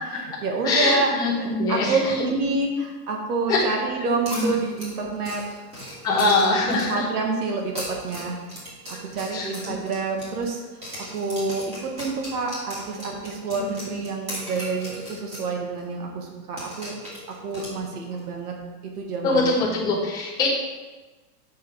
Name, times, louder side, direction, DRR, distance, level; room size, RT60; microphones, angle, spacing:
voice 1, 0.1-5.4 6.1-7.7 8.0-8.4 8.9-10.6 11.1-16.9 17.4-18.5 19.0-19.5, right 3 dB, 75° right, 1 dB, 1.5 m, -28 dB
voice 2, 0.6-2.1 3.5-3.6 4.3-4.5 6.0-7.0 9.3-9.8 19.2-20.5, left 3 dB, 10° left, -6 dB, 0.7 m, -23 dB
sound 1, 4.3-7.1 7.6-10.6 10.8-15.5 15.8-15.9 16.6-18.2, equal, 15° right, 1.6 m, -37 dB
6.4 x 5.5 x 4.5 m, 1.2 s
supercardioid pair, 175°, 46 cm